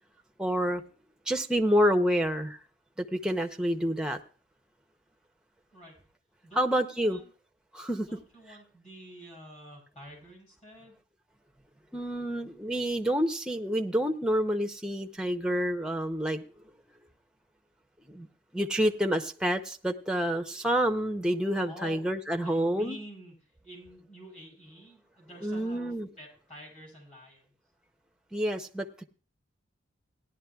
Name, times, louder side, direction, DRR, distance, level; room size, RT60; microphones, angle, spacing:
voice 1, 0.4-0.8 1.3-2.6 3.0-4.2 6.6-7.2 7.7-8.1 11.9-16.4 18.1-18.3 18.5-23.0 25.4-26.1 28.3-29.0, equal, 5° right, 6 dB, 0.6 m, -28 dB
voice 2, 6.4-7.3 8.0-11.0 21.7-22.0 22.4-23.3 23.6-25.9 26.2-27.5, equal, 35° left, -2 dB, 5.7 m, -48 dB
17.5 x 11.0 x 2.3 m, 0.39 s
head